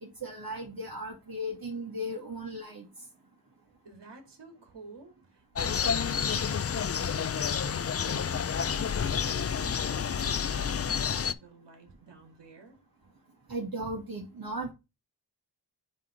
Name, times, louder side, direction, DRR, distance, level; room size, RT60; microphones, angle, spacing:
voice 1, 0.0-2.9 13.5-14.7, equal, 55° right, -1 dB, 1.9 m, -36 dB
voice 2, 3.8-12.8, right 3 dB, 70° right, 4 dB, 2.1 m, -51 dB
sound 1, 5.5-11.3, left 7 dB, 35° left, 0.5 m, -29 dB
7.4 x 3.3 x 4.9 m, 0.26 s
cardioid pair, 55°, 42 cm